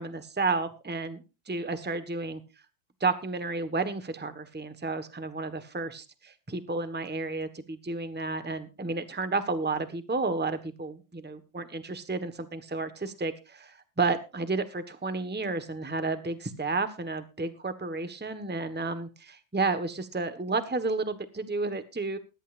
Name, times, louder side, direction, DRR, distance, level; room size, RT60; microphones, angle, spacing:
voice 1, 0.0-2.4 3.0-22.2, right 3 dB, 5° right, 10 dB, 1.1 m, -31 dB
21.0 x 11.0 x 2.6 m, 0.29 s
omnidirectional pair, 2.1 m